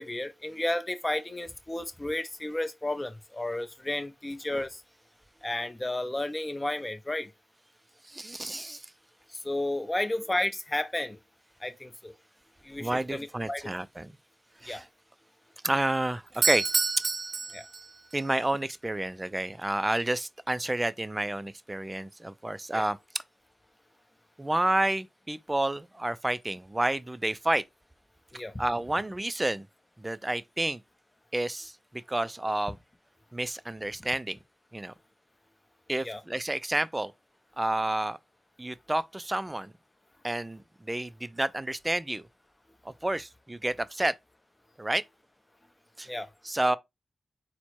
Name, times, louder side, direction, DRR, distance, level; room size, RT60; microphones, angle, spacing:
voice 1, 0.0-4.8 5.4-7.3 9.3-11.2 11.6-12.1 12.6-13.7 14.6-14.8 17.5-17.7 22.7-22.8 28.3-28.6 36.0-36.2 46.1-46.3, left 1 dB, 20° left, 0.7 m, -32 dB
voice 2, 8.1-8.8 12.8-14.1 14.6-14.8 15.6-16.6 18.1-23.0 24.4-27.6 28.6-29.7 30.0-30.8 31.3-31.7 32.1-32.8 33.3-34.4 34.7-34.9 35.9-37.1 37.6-38.2 38.6-39.7 40.2-42.3 43.0-44.1 44.8-45.0 46.0-46.1 46.4-46.8, right 1 dB, 15° right, 0.4 m, -30 dB
Doorbell, 16.3-18.2, right 4 dB, 50° right, 0.8 m, -29 dB
4.3 x 2.1 x 4.5 m
cardioid pair, 70°, 0 cm